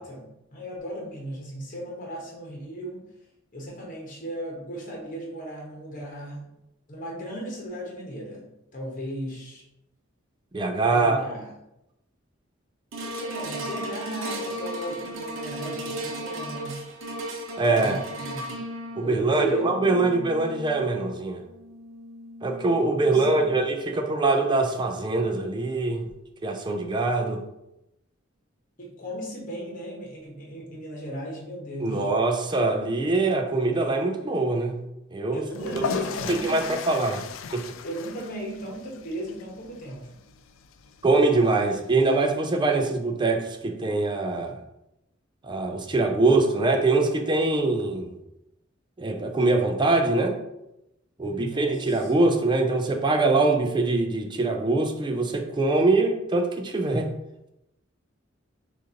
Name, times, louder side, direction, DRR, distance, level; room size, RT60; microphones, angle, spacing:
voice 1, 0.0-3.1 3.5-6.5 6.9-8.5 8.7-9.6 10.9-11.5 13.2-16.8 17.7-18.6 19.0-20.1 23.0-23.5 28.8-32.1 35.3-36.6 37.8-40.1 51.2-52.1, right 1 dB, 45° left, -2 dB, 1.1 m, -36 dB
voice 2, 10.5-11.2 17.6-18.0 19.0-21.4 22.4-26.0 26.4-27.4 31.8-34.8 35.1-35.8 36.3-37.2 37.5-37.6 41.0-44.5 45.5-48.1 49.0-50.4 51.2-57.1, right 3 dB, 25° right, 4 dB, 0.4 m, -23 dB
sound 1, 12.9-23.3 23.9-24.0, right 1 dB, 75° right, 0.8 m, -36 dB
sound 2, 35.5-42.3, left 6 dB, 75° left, 0.3 m, -37 dB
6.3 x 2.6 x 2.8 m, 0.87 s
head